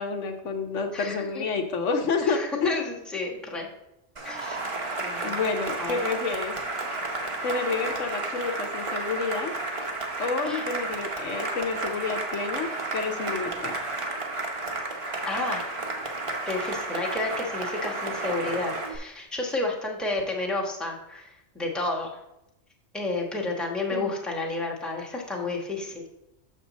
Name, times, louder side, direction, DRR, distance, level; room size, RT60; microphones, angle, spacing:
voice 1, 0.0-2.7 5.2-6.5 7.4-9.5 10.2-13.7 23.9-24.1, left 4 dB, 85° left, 5 dB, 1.2 m, -29 dB
voice 2, 0.9-1.5 2.2-3.7 4.2-4.6 5.0-5.3 5.8-6.0 10.4-10.6 15.2-15.7 16.5-21.3 21.5-22.1 22.9-26.1, left 2 dB, ahead, -2 dB, 1.1 m, -31 dB
Cheering / Applause, 4.2-19.0, right 2 dB, 30° right, 0.9 m, -32 dB
6.5 x 6.4 x 4.1 m, 0.87 s
omnidirectional pair, 1.2 m